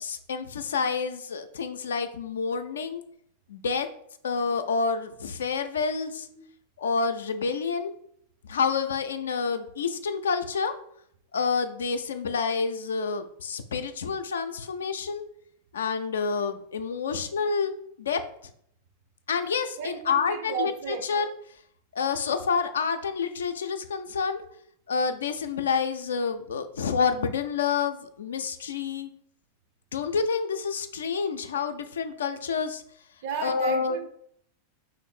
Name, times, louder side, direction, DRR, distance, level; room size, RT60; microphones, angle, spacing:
voice 1, 0.0-3.0 3.5-3.9 4.2-6.3 6.8-7.9 8.4-10.7 11.3-15.2 15.7-17.7 18.0-18.2 19.3-21.3 21.9-24.4 24.9-29.1 29.9-32.8 33.4-34.0, left 5 dB, 65° left, 0.3 m, -28 dB
voice 2, 19.8-21.1 33.2-34.1, right 6 dB, 50° right, 0.5 m, -33 dB
3.1 x 2.5 x 4.3 m
figure-of-eight pair, 90°, 0 cm